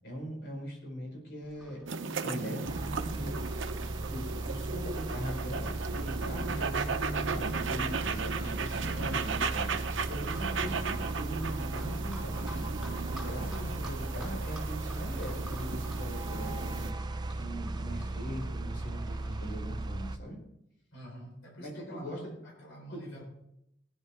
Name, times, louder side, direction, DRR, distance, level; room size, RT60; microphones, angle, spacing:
voice 1, 0.0-1.8 2.2-3.6 4.1-12.7 13.0-20.4 21.6-22.3 22.9-23.0, equal, 60° left, 0 dB, 4.7 m, -41 dB
Livestock farm animals working animals, 1.4-19.5, right 1 dB, ahead, 3.2 m, -51 dB
sound 1, 1.9-16.9, right 5 dB, 80° right, 0.8 m, -36 dB
sound 2, 2.6-20.2, right 2 dB, 20° right, 0.5 m, -36 dB
voice 2, 8.9-9.3 13.5-13.9 20.9-23.2, equal, 85° left, -1 dB, 4.3 m, -46 dB
18.5 x 10.5 x 3.6 m, 0.81 s
head